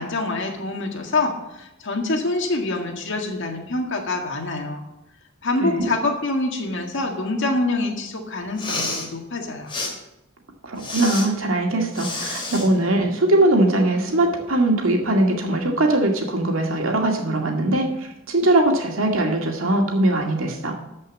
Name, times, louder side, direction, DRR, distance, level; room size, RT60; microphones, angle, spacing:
voice 1, 0.0-1.3 1.6-4.8 5.4-9.7, left 2 dB, 65° left, 2 dB, 1.8 m, -25 dB
Respiratory sounds, 8.5-9.1 9.7-9.9 10.8-11.3 11.9-12.7, left 3 dB, 25° left, 2.8 m, -29 dB
voice 2, 10.6-20.7, right 1 dB, 80° right, 2 dB, 2.2 m, -21 dB
13.5 x 5.5 x 7.2 m, 0.90 s
head